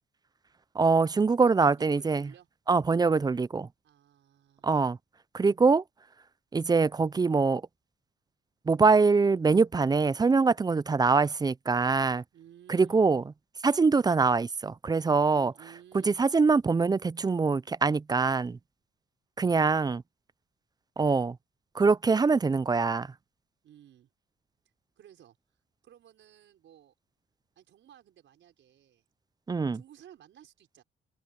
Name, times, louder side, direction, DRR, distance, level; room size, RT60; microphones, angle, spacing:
voice 1, 0.8-2.3 2.7-3.7 4.6-5.0 5.3-5.8 6.5-7.6 8.7-12.2 12.7-13.2 13.6-15.5 16.1-18.6 19.4-20.0 21.0-21.4 21.8-23.1 29.5-29.8, right 4 dB, 20° right, 0.4 m, -24 dB
voice 2, 1.5-2.5 3.8-4.8 12.3-13.2 15.3-16.2 23.6-24.1 25.0-25.4 25.8-26.9 27.6-29.0 29.7-30.8, right 11 dB, 70° right, 5.4 m, -55 dB
open air
cardioid pair, 90°, 20 cm